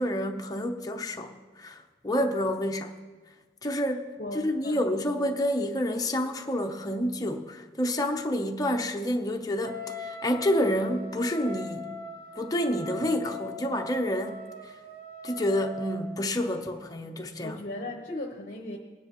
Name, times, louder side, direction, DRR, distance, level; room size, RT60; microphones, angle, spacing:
voice 1, 0.0-2.9 3.6-4.1 4.4-11.9 12.4-14.7 15.2-17.6, left 1 dB, 20° left, 3 dB, 0.7 m, -29 dB
voice 2, 4.2-4.8 17.4-18.8, left 2 dB, 45° left, 0 dB, 0.9 m, -37 dB
Wind instrument woodwind instrument, 9.6-16.3, left 2 dB, 60° right, 0.8 m, -41 dB
19.5 x 9.4 x 3.0 m, 1.4 s
head